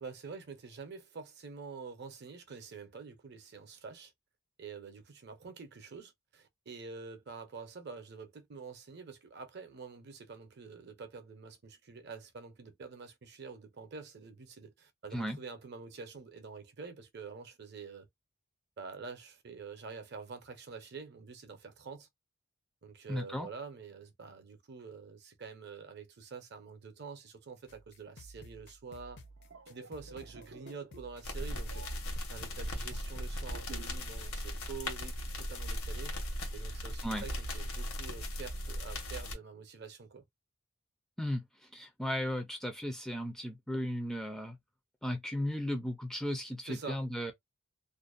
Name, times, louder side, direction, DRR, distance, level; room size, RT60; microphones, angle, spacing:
voice 1, 0.0-4.1 4.6-18.1 18.8-22.1 22.8-29.2 29.7-36.1 36.5-40.2 46.7-47.0, right 5 dB, 50° right, 0.6 m, -47 dB
voice 2, 23.1-23.5 37.0-37.2 41.2-44.6 45.0-47.3, equal, ahead, 0.3 m, -35 dB
sound 1, 27.7-33.2, equal, 55° left, 0.5 m, -54 dB
sound 2, 29.2-34.1 34.4-34.7, right 3 dB, 90° right, 0.6 m, -54 dB
sound 3, 31.2-39.3, equal, 85° left, 1.1 m, -38 dB
2.5 x 2.1 x 2.4 m
head